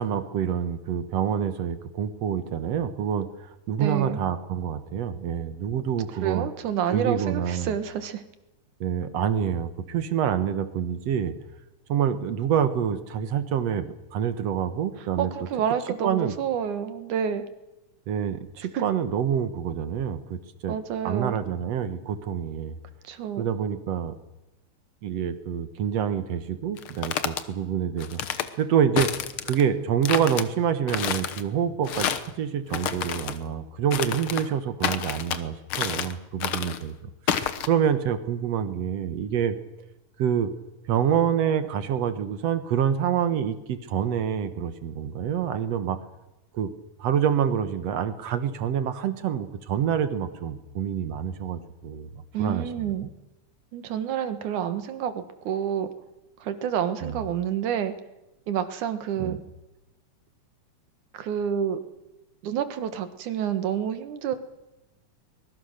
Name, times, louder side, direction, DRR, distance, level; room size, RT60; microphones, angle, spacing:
voice 1, 0.0-6.5 6.9-7.7 8.8-11.3 11.9-15.3 16.0-16.4 18.1-20.8 21.0-22.8 23.4-24.2 25.0-28.2 28.6-29.1 29.5-39.6 40.2-40.5 40.9-46.0 46.5-46.7 47.0-52.1 52.4-52.9 57.0-57.2 59.2-59.4, right 8 dB, 65° right, 11 dB, 2.2 m, -27 dB
voice 2, 3.8-4.2 6.2-8.2 15.2-17.5 18.7-18.8 20.7-21.4 23.0-23.5 52.3-53.1 53.7-55.9 56.4-57.9 58.5-59.4 61.1-61.8 62.4-64.4, right 8 dB, 85° right, 10 dB, 3.0 m, -28 dB
sound 1, 26.8-27.4 28.0-28.5 29.0-29.6 30.0-30.4 30.9-31.4 31.8-32.3 32.7-33.4 33.9-34.5 34.8-35.4 35.7-36.1 36.4-36.8 37.3-37.7, left 9 dB, 60° left, 1.6 m, -29 dB
23.5 x 21.5 x 6.6 m, 0.96 s
omnidirectional pair, 3.4 m